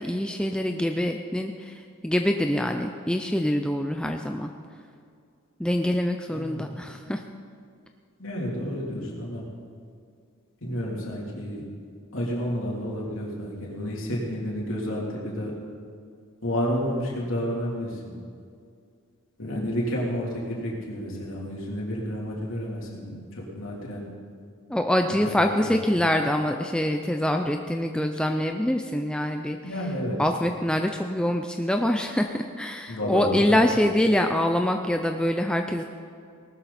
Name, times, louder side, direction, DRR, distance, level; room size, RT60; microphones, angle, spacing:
voice 1, 0.0-4.5 5.6-7.2 24.7-29.6 30.2-35.8, left 1 dB, 5° left, 4 dB, 0.4 m, -25 dB
voice 2, 6.3-6.7 8.2-9.4 10.6-11.6 12.1-15.5 16.4-18.1 19.4-24.0 25.3-25.7 29.6-30.2 32.9-33.8, equal, 70° left, -4 dB, 3.4 m, -30 dB
19.0 x 12.5 x 4.2 m, 2.3 s
head